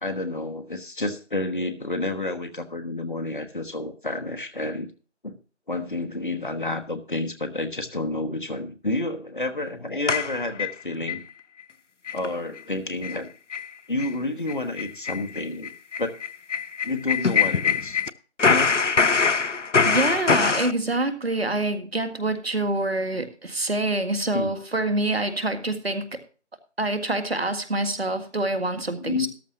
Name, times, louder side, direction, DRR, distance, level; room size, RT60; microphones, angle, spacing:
voice 1, 0.0-4.9 5.2-5.3 5.7-11.2 12.1-13.3 13.9-15.7 16.0-16.2 16.8-18.0 18.5-18.7 24.3-24.5 29.0-29.3, left 2 dB, 45° left, 6 dB, 1.2 m, -29 dB
sound 1, 10.1-11.2 11.6-11.7 12.1-12.3 12.6-12.7 13.0-13.2 13.5-13.7 14.0-14.1 14.5-18.1 18.4-20.7, left 5 dB, 85° left, 0.8 m, -23 dB
voice 2, 19.8-26.2 26.8-29.3, right 2 dB, 60° right, 9 dB, 1.8 m, -26 dB
14.0 x 12.0 x 2.8 m, 0.36 s
figure-of-eight pair, 170°, 35 cm